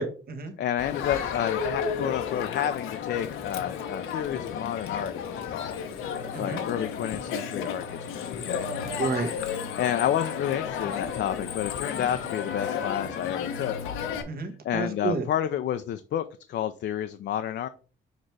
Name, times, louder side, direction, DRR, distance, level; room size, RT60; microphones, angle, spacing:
voice 1, 0.0-0.5 6.3-6.6 9.0-9.3 14.3-15.2, right 4 dB, 50° right, 7 dB, 1.4 m, -30 dB
voice 2, 0.6-5.8 6.4-8.7 9.8-13.8 14.6-17.7, left 10 dB, 60° left, 8 dB, 0.5 m, -30 dB
Crowd, 0.8-14.2, left 7 dB, 90° left, 1.0 m, -32 dB
6.5 x 3.2 x 4.7 m, 0.38 s
cardioid pair, 90°, 20 cm